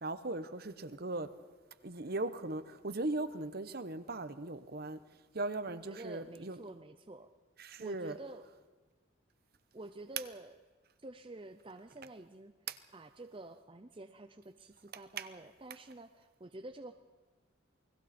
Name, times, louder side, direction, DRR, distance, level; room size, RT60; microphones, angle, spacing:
voice 1, 0.0-1.3 1.8-5.0 5.3-6.6 7.6-8.2 12.7-12.8 15.2-15.3, right 2 dB, 50° right, 1.0 m, -38 dB
voice 2, 5.9-7.3 7.8-8.5 9.7-10.6 11.0-12.5 12.9-16.9, right 2 dB, 25° right, 0.6 m, -49 dB
28.5 x 21.0 x 4.3 m
head